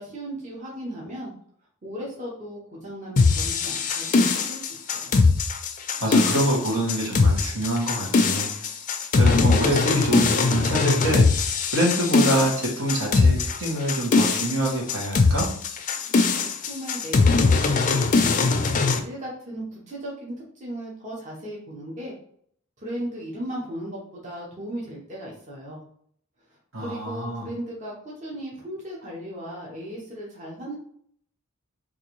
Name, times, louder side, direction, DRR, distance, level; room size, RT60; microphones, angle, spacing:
voice 1, 0.0-1.3 1.8-5.1 16.4-22.1 22.8-25.8 26.8-30.8, right 1 dB, 35° right, -3 dB, 0.8 m, -36 dB
sound 1, 3.2-19.0, left 4 dB, 40° left, 0.4 m, -21 dB
voice 2, 6.0-8.7 9.2-11.5 11.7-15.5 26.7-27.4, right 1 dB, 75° right, -3 dB, 1.3 m, -26 dB
3.7 x 2.6 x 3.0 m, 0.64 s
head